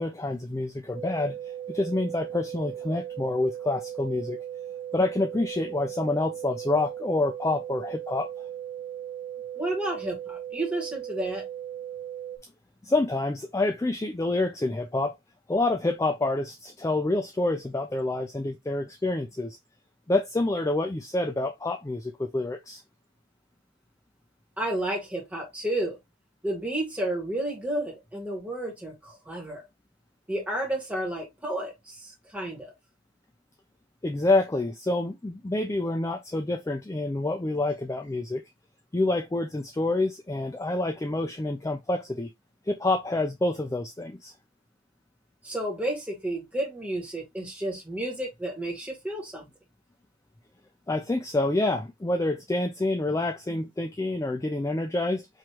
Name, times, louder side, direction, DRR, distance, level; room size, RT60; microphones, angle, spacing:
voice 1, 0.0-4.4 4.9-8.5 12.8-15.2 15.5-19.6 20.1-22.8 34.0-38.4 38.9-42.3 42.7-44.3 50.9-55.3, left 2 dB, 15° left, 0.3 m, -27 dB
sound 1, 0.9-12.4, right 10 dB, 25° right, 1.7 m, -37 dB
voice 2, 9.5-11.4 24.6-26.0 26.4-29.6 30.3-32.7 45.4-49.5, right 1 dB, 5° right, 1.7 m, -31 dB
4.8 x 3.0 x 2.9 m
head